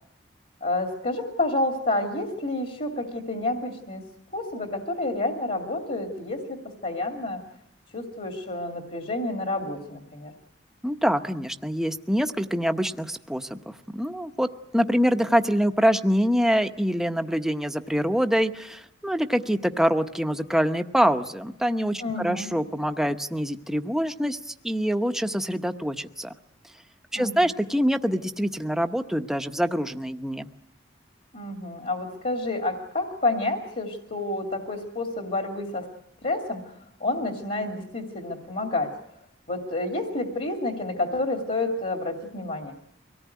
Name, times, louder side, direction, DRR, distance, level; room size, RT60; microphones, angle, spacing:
voice 1, 0.6-4.0 4.3-7.4 7.9-10.3 22.0-22.5 27.1-27.5 31.3-35.9 36.2-36.6 37.0-38.9 39.5-42.7, left 2 dB, 50° left, 2 dB, 2.5 m, -29 dB
voice 2, 10.8-14.5 14.7-26.3 27.1-30.5, equal, 5° right, 6 dB, 0.9 m, -25 dB
24.0 x 18.0 x 9.4 m, 0.82 s
head